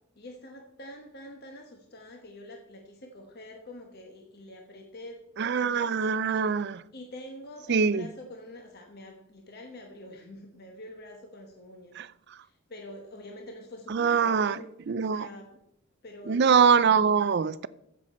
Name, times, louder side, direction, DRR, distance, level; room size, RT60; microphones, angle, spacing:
voice 1, 0.2-5.2 5.5-6.1 6.9-11.9 12.3-14.7 15.0-15.5 16.0-16.8, left 1 dB, 45° left, 1.1 m, -46 dB
voice 2, 5.4-6.8 7.7-8.1 12.0-12.1 13.9-14.6 14.9-15.3 16.3-17.7, right 6 dB, 50° right, 0.4 m, -23 dB
15.0 x 6.6 x 4.3 m
head